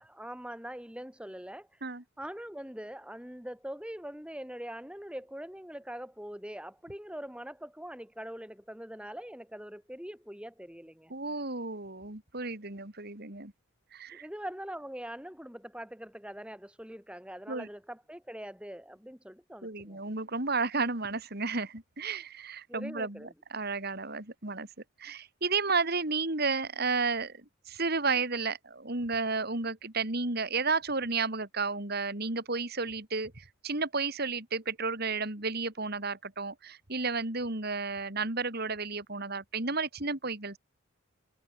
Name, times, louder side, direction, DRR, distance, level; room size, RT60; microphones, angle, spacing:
voice 1, 0.0-1.7 2.2-11.1 14.1-20.0 22.7-23.3, equal, 5° right, 3.2 m, -43 dB
voice 2, 11.1-13.5 13.9-14.3 17.5-17.7 19.6-24.7 25.0-40.6, right 4 dB, 50° right, 3.0 m, -32 dB
head